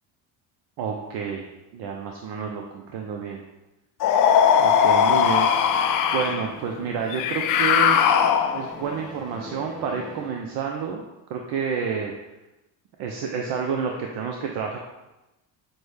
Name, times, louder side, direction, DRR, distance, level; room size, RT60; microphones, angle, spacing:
voice 1, 0.8-1.5 1.7-3.4 4.6-5.7 6.1-8.0 8.5-11.0 11.3-12.1 13.0-14.8, right 6 dB, 55° right, 1 dB, 0.6 m, -29 dB
sound 1, 4.0-6.5 7.1-8.8, left 8 dB, 45° left, 0.4 m, -19 dB
sound 2, 4.0-10.4, left 1 dB, ahead, 0.9 m, -42 dB
6.1 x 2.1 x 3.3 m, 1.0 s
supercardioid pair, 75°, 48 cm